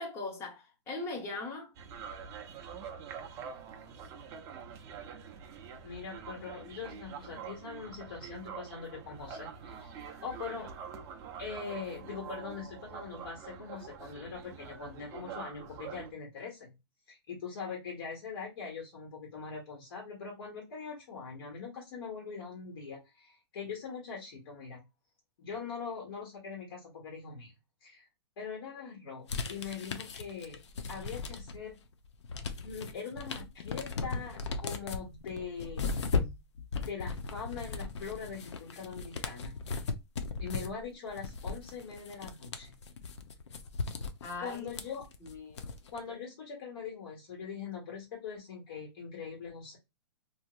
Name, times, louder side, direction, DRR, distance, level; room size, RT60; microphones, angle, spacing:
voice 1, 0.0-1.7 44.2-44.7 45.2-45.8, left 3 dB, 20° left, 0.9 m, -40 dB
sound 1, 1.8-16.1, right 7 dB, 20° right, 0.4 m, -45 dB
voice 2, 5.8-10.7 11.4-16.8 17.1-24.8 25.4-27.5 27.8-28.1 28.4-30.6 30.9-31.7 32.6-35.9 36.8-39.6 40.4-42.7 44.4-45.1 45.9-49.8, left 5 dB, 55° left, 1.5 m, -42 dB
sound 2, 29.3-31.7 32.0-46.0, left 4 dB, 80° left, 0.6 m, -37 dB
3.1 x 2.7 x 2.3 m
hypercardioid pair, 150°, 14 cm